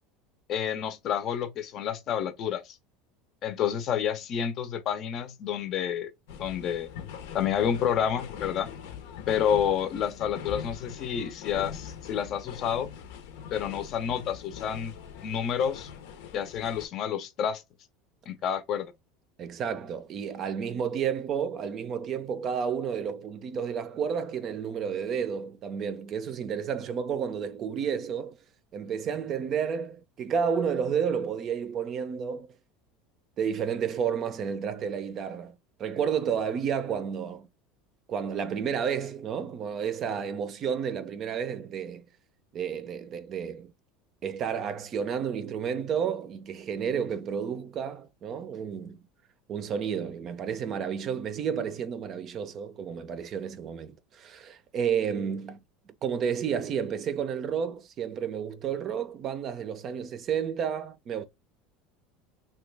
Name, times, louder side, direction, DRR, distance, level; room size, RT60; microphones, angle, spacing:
voice 1, 0.5-2.6 3.4-6.1 6.4-6.9 7.3-8.7 9.3-12.9 13.5-14.9 15.2-15.9 16.3-17.6 18.3-18.9, left 8 dB, 45° left, 0.6 m, -29 dB
sound 1, 6.3-16.9, left 8 dB, 80° left, 0.8 m, -42 dB
voice 2, 19.4-28.4 28.7-32.5 33.4-37.5 38.1-42.0 42.5-43.7 44.2-49.0 49.5-55.6 55.9-61.2, right 7 dB, 40° right, 0.5 m, -31 dB
3.0 x 2.3 x 3.2 m
supercardioid pair, 130°, 0 cm